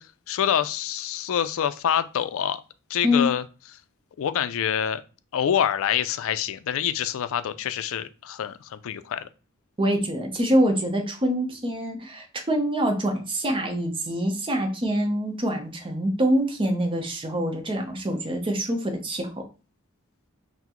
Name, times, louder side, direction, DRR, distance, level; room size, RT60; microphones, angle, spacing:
voice 1, 0.0-2.6 2.9-3.4 4.2-5.0 5.3-9.3, left 9 dB, 65° left, 12 dB, 0.4 m, -26 dB
voice 2, 9.8-19.4, equal, 25° right, 3 dB, 0.7 m, -25 dB
5.7 x 2.1 x 3.0 m, 0.33 s
head